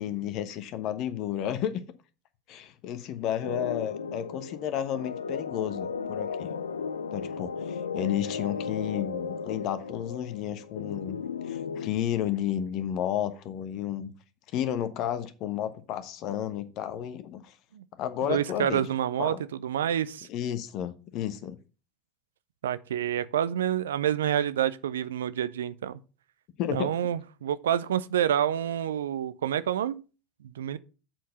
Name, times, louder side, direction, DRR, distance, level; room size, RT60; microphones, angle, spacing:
voice 1, 0.0-1.8 2.5-6.5 7.1-11.2 11.4-14.1 14.5-17.5 18.0-18.8 19.2-19.4 20.3-21.6 26.6-26.9, left 10 dB, 50° left, 1.0 m, -32 dB
sound 1, 3.4-11.9, left 6 dB, 85° left, 0.6 m, -35 dB
voice 2, 18.2-20.3 22.6-26.0 26.7-30.0 30.4-30.8, right 10 dB, 75° right, 0.5 m, -28 dB
7.6 x 4.5 x 6.6 m
hypercardioid pair, 80°, 0 cm